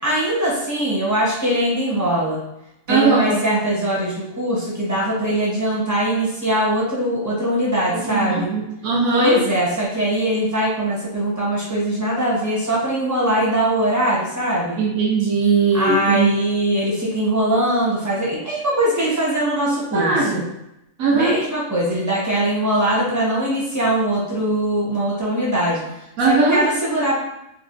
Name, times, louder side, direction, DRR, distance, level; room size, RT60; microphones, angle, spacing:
voice 1, 0.0-2.4 2.9-8.5 9.1-14.8 15.7-20.4 21.1-25.8 26.2-27.2, right 1 dB, 15° right, -6 dB, 0.7 m, -21 dB
voice 2, 2.9-3.4 7.9-9.4 14.8-16.4 19.9-20.4 21.0-21.4 26.2-26.6, right 4 dB, 70° right, -4 dB, 1.2 m, -19 dB
3.9 x 2.1 x 2.6 m, 0.87 s
omnidirectional pair, 1.5 m